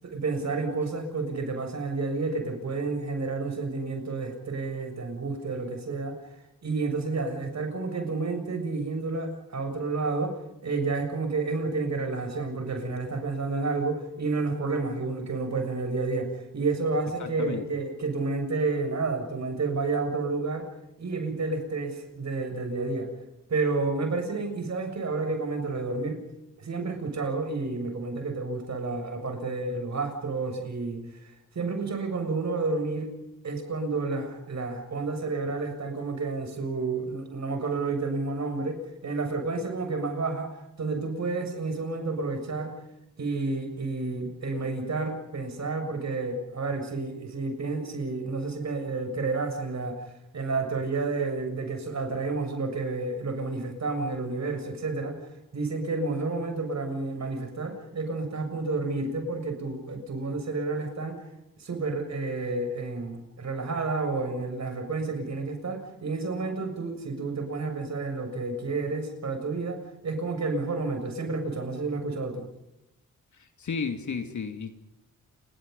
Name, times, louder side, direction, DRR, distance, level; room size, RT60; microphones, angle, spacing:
voice 1, 0.0-6.2 6.6-20.7 21.0-23.1 23.5-26.2 26.6-31.0 31.5-33.1 33.4-40.5 40.8-42.7 43.2-50.0 50.3-55.2 55.5-61.2 61.6-72.4, right 3 dB, 50° right, 5 dB, 7.0 m, -30 dB
voice 2, 17.2-17.6 73.3-74.7, left 5 dB, 60° left, 6 dB, 2.5 m, -33 dB
29.0 x 22.5 x 5.5 m, 0.87 s
cardioid pair, 100°, 34 cm